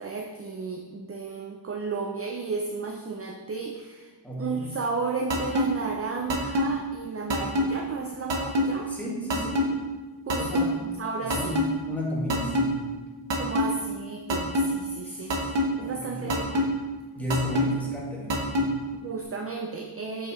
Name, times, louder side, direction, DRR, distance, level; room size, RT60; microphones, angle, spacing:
voice 1, 0.0-4.1 4.4-8.9 10.3-11.6 13.4-15.4 15.8-16.7 18.9-20.3, right 4 dB, 35° right, 2 dB, 0.5 m, -33 dB
voice 2, 4.2-4.7 8.9-9.7 10.4-10.8 11.2-12.9 15.0-15.5 15.7-16.6 17.1-18.8, equal, 5° left, -5 dB, 1.8 m, -34 dB
sound 1, 5.3-5.6 6.3-6.7 7.3-7.6 8.3-8.7 9.3-9.7 10.3-10.7 11.3-11.6 12.3-12.7 13.3-13.6 14.3-14.7 15.3-15.7 16.3-16.7 17.3-17.6 18.3-18.7, left 2 dB, 70° right, 1.1 m, -23 dB
6.8 x 6.1 x 3.1 m, 1.3 s
wide cardioid pair, 110°, 44 cm